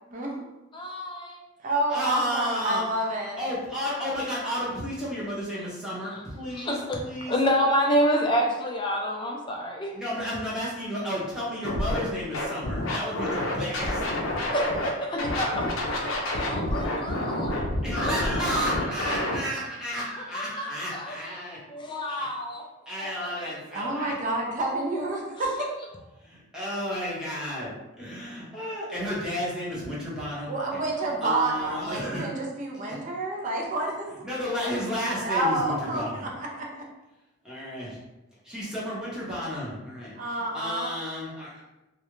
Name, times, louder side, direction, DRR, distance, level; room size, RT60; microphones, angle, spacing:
voice 1, 0.1-0.4 1.6-3.4 23.7-25.7 30.5-34.2 35.2-36.8 40.2-40.9, right 2 dB, 40° right, -1 dB, 0.4 m, -29 dB
voice 2, 0.7-1.3 6.6-7.0 7.3-9.9 14.5-17.7 18.0-18.2 20.3-21.2 21.7-22.6 23.0-23.1 23.4-23.5 23.8-23.9, equal, 25° left, 1 dB, 0.3 m, -28 dB
voice 3, 1.9-2.9 3.4-7.3 9.9-14.0 17.8-21.6 22.1-22.3 22.9-24.1 26.2-32.3 32.8-33.0 34.2-36.3 37.4-38.0 38.4-41.5, equal, 5° right, -8 dB, 0.7 m, -32 dB
Scratching (performance technique), 11.6-12.0 12.3-14.9 15.2-19.4, left 1 dB, 85° left, 0.5 m, -28 dB
2.3 x 2.1 x 3.0 m, 1.0 s
head